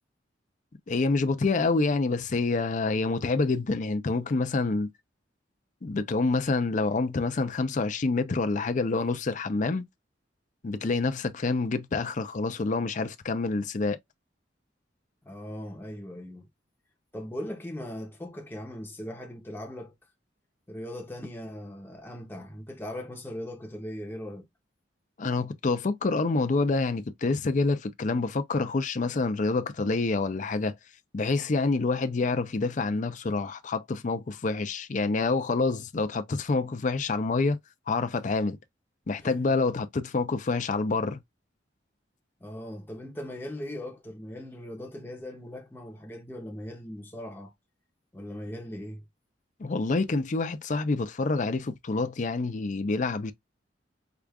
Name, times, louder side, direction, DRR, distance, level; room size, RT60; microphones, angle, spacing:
voice 1, 0.9-4.9 5.8-9.9 10.6-14.0 25.2-30.7 31.1-37.6 37.9-38.6 39.1-41.2 49.6-53.3, left 3 dB, 40° left, 0.5 m, -27 dB
voice 2, 15.2-16.5 17.1-19.9 20.7-24.5 39.2-39.6 42.4-47.5 48.1-49.0, left 1 dB, 10° left, 0.7 m, -39 dB
4.8 x 2.4 x 2.3 m
head